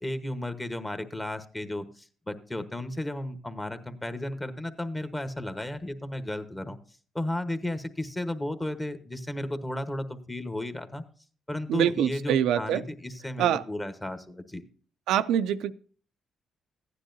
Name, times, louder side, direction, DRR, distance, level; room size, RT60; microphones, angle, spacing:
voice 1, 0.0-6.8 7.1-11.0 11.5-14.6, left 1 dB, 15° left, 9 dB, 1.1 m, -34 dB
voice 2, 11.7-12.8 13.4-13.6 15.1-15.7, right 10 dB, 85° right, 11 dB, 0.4 m, -25 dB
15.0 x 9.9 x 2.6 m, 0.42 s
cardioid pair, 90°, 0 cm